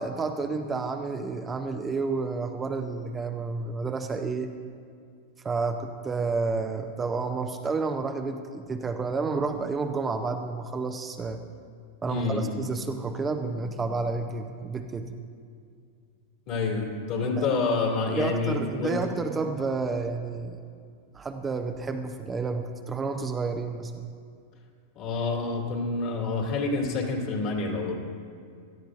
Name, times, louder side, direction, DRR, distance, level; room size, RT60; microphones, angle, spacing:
voice 1, 0.0-4.5 5.4-11.4 12.0-15.1 17.4-17.5 18.2-20.6 21.1-24.1, right 4 dB, 20° right, 6 dB, 0.6 m, -30 dB
voice 2, 12.1-12.4 16.5-19.0 24.9-28.0, left 3 dB, 50° left, 1 dB, 2.5 m, -28 dB
17.0 x 12.5 x 2.6 m, 2.3 s
hypercardioid pair, 100°, 0 cm